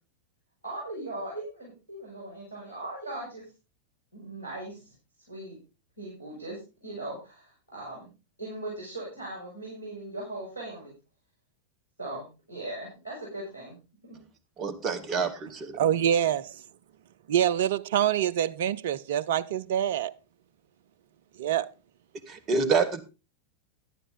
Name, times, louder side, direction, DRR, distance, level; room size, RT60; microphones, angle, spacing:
voice 1, 0.6-3.4 4.1-4.9 5.3-5.6 6.0-8.1 8.4-10.9 12.0-13.8 14.1-14.2, right 2 dB, 90° left, 6.4 m, -39 dB
voice 2, 14.6-15.8 22.3-23.0, right 5 dB, 30° right, 1.6 m, -27 dB
voice 3, 15.8-16.6 17.3-20.1 21.4-21.7, right 10 dB, 55° right, 0.5 m, -25 dB
12.0 x 11.0 x 3.8 m
figure-of-eight pair, 90°, 0 cm